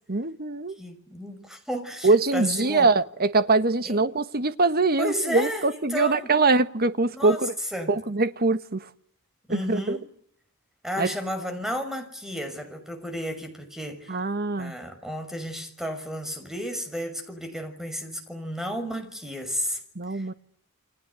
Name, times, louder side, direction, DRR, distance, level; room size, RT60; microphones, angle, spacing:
voice 1, 0.1-0.7 2.0-7.5 7.9-8.8 9.5-10.0 11.0-11.1 14.1-14.7 19.9-20.3, right 3 dB, 45° right, 1.5 m, -23 dB
voice 2, 0.8-2.9 3.8-4.0 5.0-6.3 7.1-7.4 7.7-8.0 9.5-10.1 10.8-14.2 14.6-19.8 20.1-20.3, equal, ahead, 6.2 m, -33 dB
29.5 x 23.5 x 8.4 m
head